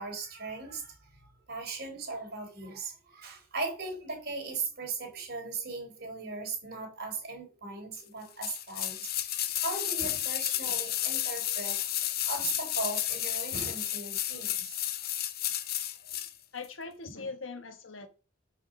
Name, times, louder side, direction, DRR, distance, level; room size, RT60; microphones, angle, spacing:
voice 1, 0.0-14.8, right 3 dB, 55° right, 4.0 m, -38 dB
sound 1, 8.4-16.3 16.6-16.7, left 12 dB, 50° left, 0.7 m, -32 dB
voice 2, 16.5-18.1, left 4 dB, 70° left, 1.3 m, -41 dB
6.3 x 5.8 x 6.7 m
head